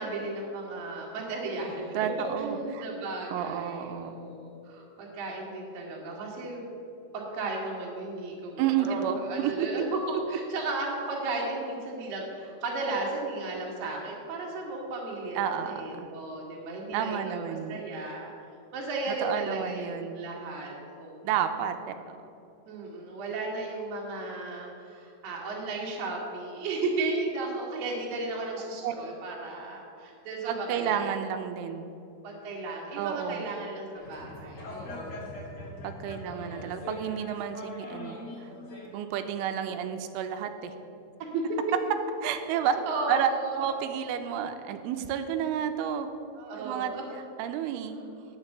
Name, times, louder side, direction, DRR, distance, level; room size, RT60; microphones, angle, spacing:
voice 1, 0.0-2.0 2.4-6.6 7.1-10.0 10.3-18.3 18.7-21.3 22.6-31.2 32.2-35.3 36.2-36.8 41.3-41.4 42.9-43.7 46.4-47.0, right 3 dB, 55° right, -2 dB, 3.1 m, -35 dB
voice 2, 1.9-2.9 3.3-4.2 8.6-9.7 15.4-16.1 16.9-17.8 19.1-20.2 21.2-22.1 28.8-28.9 30.5-31.9 33.0-33.4 35.8-38.2 38.9-40.7 42.2-42.8 43.1-43.3 43.6-46.1 46.6-46.9 47.4-48.0, right 9 dB, 90° right, 8 dB, 3.1 m, -31 dB
sound 1, 33.9-38.9, left 1 dB, 50° left, 2.2 m, -41 dB
9.7 x 7.3 x 6.6 m, 2.6 s
omnidirectional pair, 5.5 m